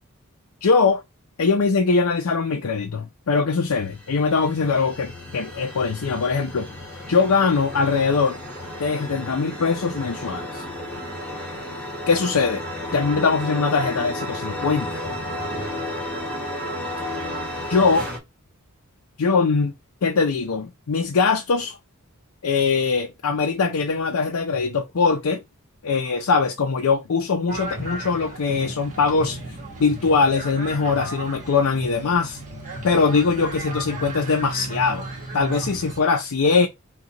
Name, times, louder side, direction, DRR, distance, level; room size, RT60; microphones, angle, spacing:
voice 1, 0.6-1.0 1.4-6.7 7.1-8.4 8.8-10.6 12.1-12.6 12.9-15.0 17.7-18.1 19.2-19.7 20.0-21.8 22.4-25.4 25.8-29.4 29.8-32.4 32.8-35.1 35.3-36.7, left 4 dB, 80° left, 0.5 m, -21 dB
sound 1, 3.6-18.2, left 1 dB, 5° left, 1.3 m, -33 dB
sound 2, 27.5-36.0, right 1 dB, 35° right, 1.3 m, -34 dB
6.2 x 2.3 x 2.9 m
head